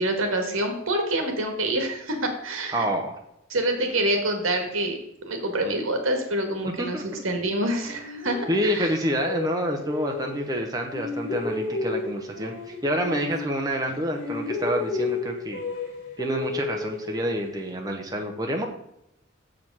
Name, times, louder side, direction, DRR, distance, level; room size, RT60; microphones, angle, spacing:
voice 1, 0.0-2.9 3.5-8.9, right 1 dB, 75° right, 4 dB, 1.7 m, -27 dB
voice 2, 2.7-3.1 6.8-7.2 8.5-15.6 16.2-18.7, equal, 20° right, 2 dB, 0.8 m, -28 dB
sound 1, 7.8-10.6 10.9-13.9 14.1-17.6, left 3 dB, 65° left, 2.7 m, -32 dB
7.2 x 5.1 x 6.1 m, 0.78 s
head